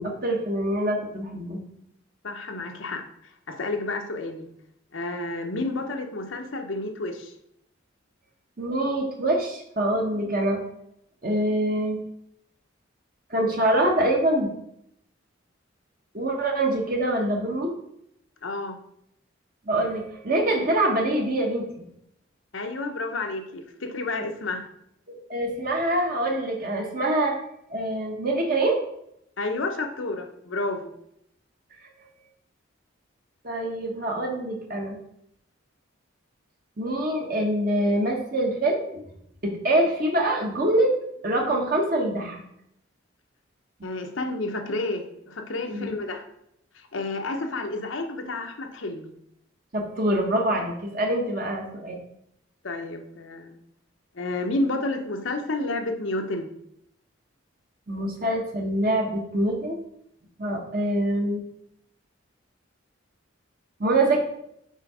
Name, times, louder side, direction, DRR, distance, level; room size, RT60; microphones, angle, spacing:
voice 1, 0.0-1.6 8.6-10.6 11.2-12.0 13.3-14.5 16.1-17.7 19.7-21.9 25.1-27.3 27.7-28.8 33.4-35.0 36.8-38.8 39.4-40.9 41.2-42.4 45.7-45.9 49.7-52.0 57.9-59.8 60.4-61.4 63.8-64.2, right 1 dB, 45° right, 1 dB, 1.0 m, -25 dB
voice 2, 2.2-3.1 3.5-4.5 4.9-7.3 18.4-18.8 22.5-24.7 29.4-30.9 43.8-46.3 46.7-49.1 52.6-53.6 54.1-56.5, left 2 dB, 75° left, 6 dB, 0.8 m, -30 dB
5.6 x 4.6 x 4.8 m, 0.76 s
head